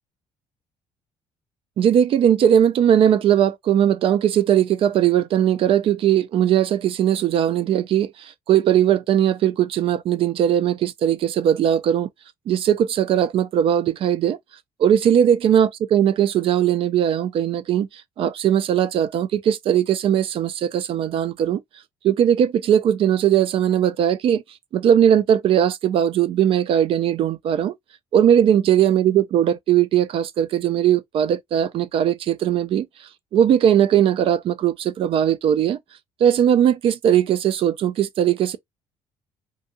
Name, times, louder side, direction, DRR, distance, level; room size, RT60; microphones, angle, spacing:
voice 1, 1.8-12.1 12.5-14.4 14.8-17.9 18.2-21.6 22.0-24.4 24.7-27.7 28.1-32.9 33.3-35.8 36.2-38.6, right 10 dB, 55° right, 0.4 m, -19 dB
2.7 x 2.3 x 2.5 m
cardioid pair, 115°, 11 cm